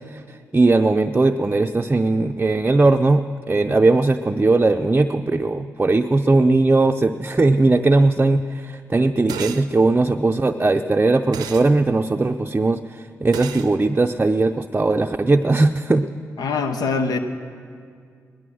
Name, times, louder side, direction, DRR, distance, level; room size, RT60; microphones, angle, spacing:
voice 1, 0.1-16.1, right 3 dB, 25° right, 5 dB, 0.5 m, -19 dB
sound 1, 9.3-9.7 11.3-11.7 13.3-13.7, right 9 dB, 90° right, 0.6 m, -32 dB
voice 2, 16.4-17.2, left 4 dB, 75° left, 7 dB, 0.9 m, -23 dB
18.5 x 11.5 x 6.3 m, 2.2 s
supercardioid pair, 40°, 7 cm